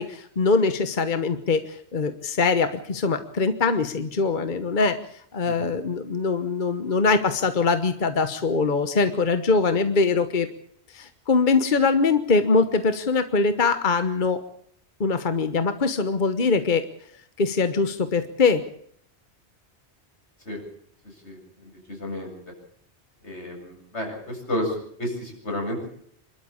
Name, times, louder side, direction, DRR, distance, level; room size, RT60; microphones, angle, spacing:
voice 1, 0.0-5.0 5.3-10.5 10.9-14.4 15.0-16.9 17.4-18.6, left 4 dB, 50° left, 10 dB, 1.3 m, -22 dB
voice 2, 21.0-22.5 23.2-25.9, left 1 dB, 90° left, 1 dB, 8.3 m, -32 dB
27.0 x 12.5 x 8.7 m, 0.66 s
omnidirectional pair, 1.1 m